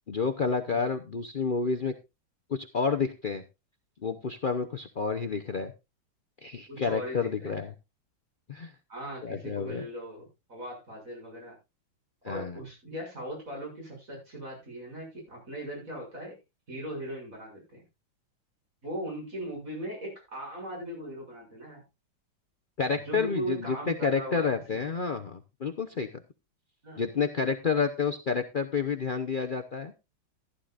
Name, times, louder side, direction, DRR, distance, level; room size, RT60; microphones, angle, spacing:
voice 1, 0.1-1.9 2.5-3.4 4.0-5.7 6.4-7.7 8.5-8.7 9.2-9.9 12.2-12.5 22.8-26.2 27.0-29.9, left 5 dB, 75° left, 6 dB, 0.4 m, -29 dB
voice 2, 6.7-7.6 8.9-11.5 12.2-16.3 16.7-17.8 18.8-21.8 23.1-24.8 26.8-27.0, right 1 dB, 40° right, 0 dB, 7.3 m, -39 dB
15.0 x 11.5 x 2.5 m, 0.25 s
omnidirectional pair, 2.2 m